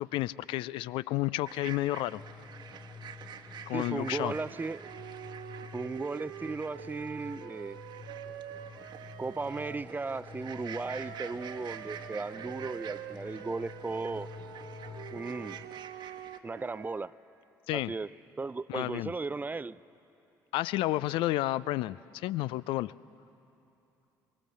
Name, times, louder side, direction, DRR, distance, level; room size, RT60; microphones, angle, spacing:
voice 1, 0.0-2.2 3.7-4.3 17.7-17.9 18.7-19.1 20.5-22.9, left 16 dB, 60° left, 19 dB, 0.4 m, -31 dB
sound 1, 1.5-16.4, right 8 dB, 50° right, 1.1 m, -48 dB
sound 2, 2.0-15.7, left 5 dB, 30° left, 2.5 m, -49 dB
voice 2, 3.7-4.9 5.7-7.8 9.2-14.3 15.1-15.6 16.4-17.1 17.7-18.1 18.4-19.8, right 3 dB, 20° right, 17 dB, 0.5 m, -36 dB
sound 3, 3.8-9.9 10.4-17.1, right 11 dB, 70° right, 0.9 m, -46 dB
23.5 x 21.5 x 7.4 m, 2.9 s
hypercardioid pair, 55°, 10 cm